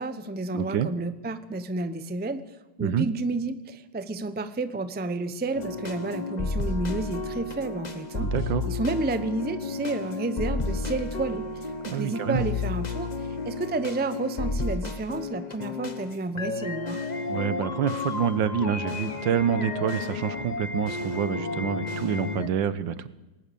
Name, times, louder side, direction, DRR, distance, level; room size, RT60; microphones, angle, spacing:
voice 1, 0.0-2.4 2.8-8.3 8.6-13.1 13.4-17.0, right 3 dB, 15° right, 11 dB, 0.4 m, -31 dB
voice 2, 0.5-0.9 2.8-3.1 8.2-8.7 11.9-12.5 17.3-23.1, right 8 dB, 85° right, 15 dB, 1.7 m, -27 dB
sound 1, 5.5-22.5, left 3 dB, 30° left, 1.0 m, -32 dB
20.0 x 18.5 x 6.9 m, 1.1 s
omnidirectional pair, 2.0 m